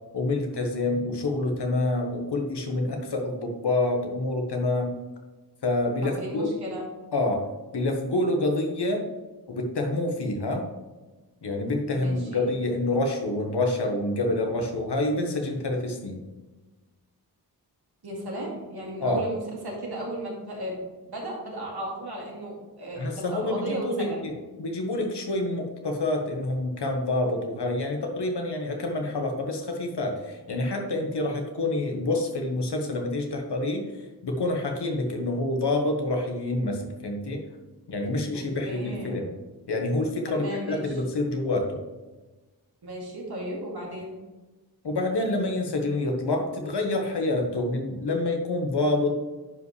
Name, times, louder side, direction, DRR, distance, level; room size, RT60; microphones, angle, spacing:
voice 1, 0.1-4.9 5.6-6.5 7.1-9.0 9.5-10.7 11.4-16.2 19.0-19.2 23.0-33.9 34.2-37.4 37.9-39.3 39.7-41.8 44.8-49.2, left 2 dB, 85° left, 3 dB, 1.4 m, -27 dB
voice 2, 6.0-6.9 11.9-12.5 18.0-24.2 38.6-39.2 40.3-41.0 42.8-44.2, right 1 dB, 75° right, -3 dB, 2.4 m, -35 dB
10.5 x 5.4 x 3.3 m, 1.2 s
wide cardioid pair, 110°, 39 cm